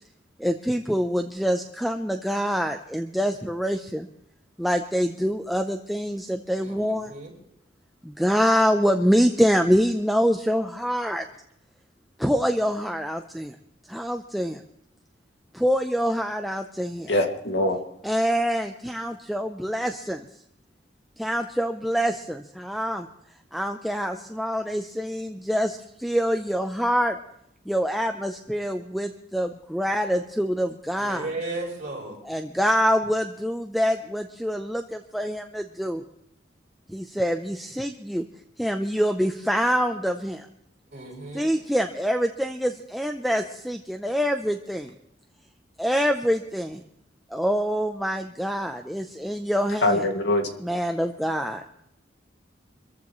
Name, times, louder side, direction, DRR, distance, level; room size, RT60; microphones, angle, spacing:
voice 1, 0.4-4.1 4.6-7.1 8.0-11.3 12.2-13.6 13.9-14.6 15.5-17.1 18.0-20.3 21.2-23.1 23.5-27.2 27.7-31.3 32.2-36.0 36.9-38.2 38.6-40.5 41.3-44.9 45.8-46.8 47.3-50.0 50.6-51.7, equal, ahead, 4 dB, 0.6 m, -25 dB
voice 2, 6.6-7.3 31.0-32.2 40.9-41.5, right 2 dB, 40° right, -3 dB, 7.3 m, -35 dB
voice 3, 17.1-17.8 49.8-50.6, left 1 dB, 65° left, 3 dB, 2.2 m, -23 dB
25.5 x 14.5 x 3.2 m, 0.78 s
head